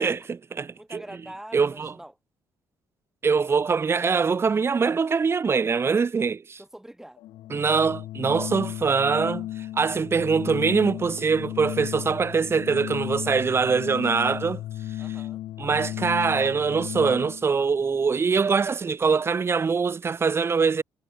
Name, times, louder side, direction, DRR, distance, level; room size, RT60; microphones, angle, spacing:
voice 1, 0.0-1.0 1.5-1.9 3.2-6.6 7.5-14.6 15.6-20.8, right 5 dB, 30° right, 1.0 m, -23 dB
voice 2, 0.8-2.1 6.6-7.2 15.0-15.4, right 1 dB, 5° right, 4.6 m, -44 dB
Organ, 7.2-17.5, left 14 dB, 75° left, 0.5 m, -35 dB
cardioid pair, 110°, 8 cm